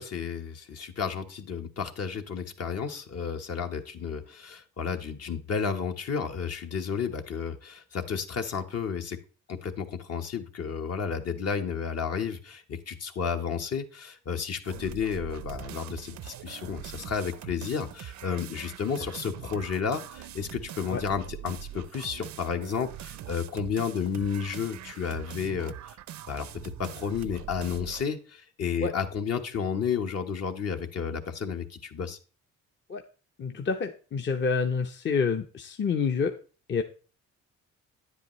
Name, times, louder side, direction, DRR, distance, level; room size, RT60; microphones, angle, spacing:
voice 1, 0.0-9.2 9.5-26.0 26.3-26.5 26.8-32.2, left 6 dB, 55° left, 6 dB, 1.1 m, -32 dB
sound 1, 14.6-28.1, right 12 dB, 65° right, 0.5 m, -43 dB
voice 2, 33.4-36.4 36.7-36.8, left 5 dB, 40° left, 5 dB, 0.8 m, -28 dB
9.6 x 8.2 x 3.1 m, 0.36 s
cardioid pair, 90°, 30 cm